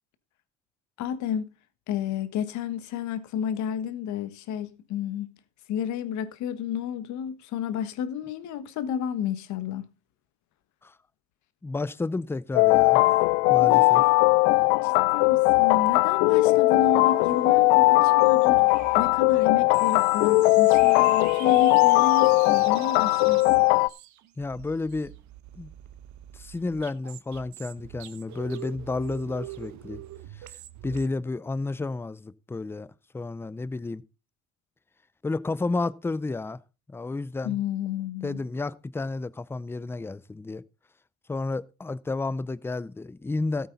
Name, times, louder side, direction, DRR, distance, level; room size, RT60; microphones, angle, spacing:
voice 1, 1.0-1.5 1.9-5.3 5.7-9.8 13.6-14.1 14.8-18.6 18.9-23.6 37.4-38.4, left 8 dB, 65° left, 1.4 m, -31 dB
voice 2, 11.6-13.2 13.5-14.0 24.4-25.1 25.5-25.7 26.3-30.0 30.3-30.5 30.8-34.0 35.2-36.6 36.9-37.6 38.2-40.6 41.3-43.7, left 3 dB, 10° left, 0.5 m, -31 dB
sound 1, 12.6-23.9, left 22 dB, 90° left, 0.5 m, -19 dB
sound 2, 16.8-31.1, right 12 dB, 65° right, 1.2 m, -44 dB
14.0 x 8.4 x 4.0 m
supercardioid pair, 95°, 31 cm